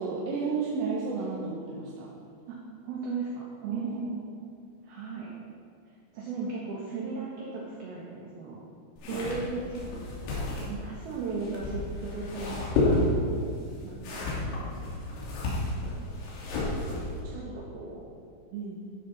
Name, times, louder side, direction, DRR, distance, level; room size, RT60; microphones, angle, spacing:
voice 1, 0.0-2.1 3.7-4.2 9.1-9.6 14.1-14.7 17.2-17.5 18.5-18.8, right 4 dB, 80° right, -4 dB, 3.7 m, -33 dB
voice 2, 2.8-4.1 4.8-5.4 6.1-8.6 9.1-9.6 10.3-13.4 13.8-14.9 15.8-16.1 17.3-18.0, right 4 dB, 65° right, -4 dB, 2.8 m, -38 dB
sound 1, 9.0-17.2, left 2 dB, 90° left, 5.6 m, -31 dB
14.5 x 11.5 x 4.3 m, 2.3 s
omnidirectional pair, 5.9 m